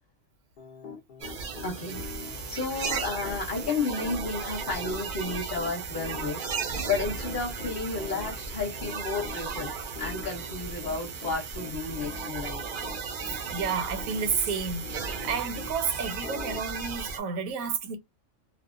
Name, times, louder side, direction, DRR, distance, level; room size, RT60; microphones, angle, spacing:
Piano, 0.6-15.7 16.2-16.6, left 5 dB, 65° left, 0.5 m, -44 dB
sound 1, 1.2-17.2, right 5 dB, 60° right, 0.5 m, -35 dB
voice 1, 1.6-12.6, left 4 dB, 40° left, 0.9 m, -32 dB
voice 2, 13.2-14.9 15.2-18.0, right 6 dB, 80° right, 1.0 m, -31 dB
2.4 x 2.0 x 2.4 m
omnidirectional pair, 1.4 m